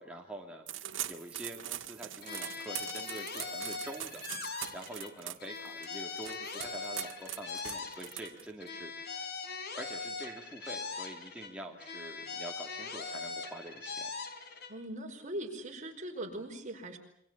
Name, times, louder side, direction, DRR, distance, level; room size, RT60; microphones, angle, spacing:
voice 1, 0.0-4.2 4.7-9.3 9.8-14.1, right 1 dB, 5° right, 0 dB, 2.6 m, -46 dB
sound 1, 0.7-8.7, right 12 dB, 70° right, 1.9 m, -42 dB
sound 2, 2.2-5.1 5.4-8.3 8.6-11.5 11.8-14.7, left 4 dB, 55° left, 3.8 m, -41 dB
voice 2, 14.7-17.0, right 1 dB, 40° right, 3 dB, 5.2 m, -40 dB
27.5 x 25.0 x 7.3 m, 0.69 s
head